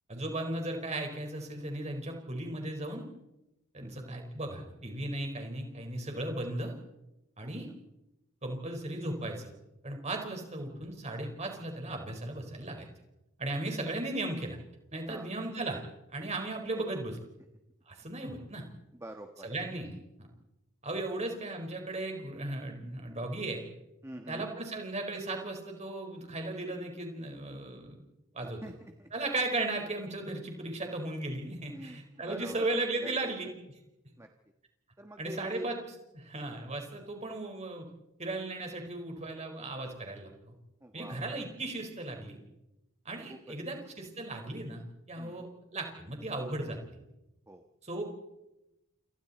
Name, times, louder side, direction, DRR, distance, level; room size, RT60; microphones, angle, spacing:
voice 1, 0.1-3.1 3.7-6.7 7.4-7.7 8.4-9.5 9.8-12.9 13.4-14.6 14.9-15.8 16.1-17.2 17.9-18.6 19.4-20.0 20.8-23.6 24.3-27.9 28.3-28.6 29.1-33.5 35.2-35.7 36.1-37.9 38.2-40.5 40.9-42.4 43.0-46.8 47.8-48.0, right 2 dB, 30° right, 3 dB, 4.8 m, -36 dB
voice 2, 3.8-4.2 7.4-7.5 15.1-15.3 18.9-19.5 21.1-21.2 24.0-24.5 28.4-29.1 31.4-33.3 34.2-34.3 35.0-35.7 40.8-41.2 43.3-43.5 45.2-45.4 47.5-47.6, right 1 dB, 15° right, 4 dB, 1.3 m, -46 dB
29.5 x 28.5 x 4.3 m, 0.93 s
head